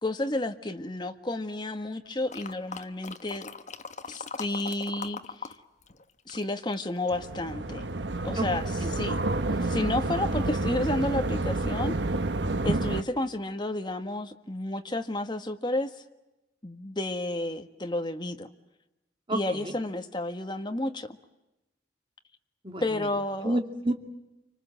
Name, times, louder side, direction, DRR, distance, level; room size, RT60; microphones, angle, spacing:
voice 1, 0.0-3.5 4.1-5.5 6.3-7.9 8.2-8.6 8.9-9.1 9.6-12.0 12.6-15.9 16.6-18.5 19.3-21.1 22.8-23.6, left 1 dB, 25° left, 6 dB, 1.6 m, -31 dB
sound 1, 2.3-5.6 5.8-7.3 7.8-7.9, left 4 dB, 40° left, 1.3 m, -40 dB
sound 2, 7.1-13.0, right 2 dB, 85° right, 1.2 m, -29 dB
voice 2, 8.8-9.2 19.3-19.7 22.6-23.1 23.4-23.9, right 1 dB, 30° right, 4 dB, 2.8 m, -30 dB
30.0 x 25.5 x 7.7 m, 0.97 s
head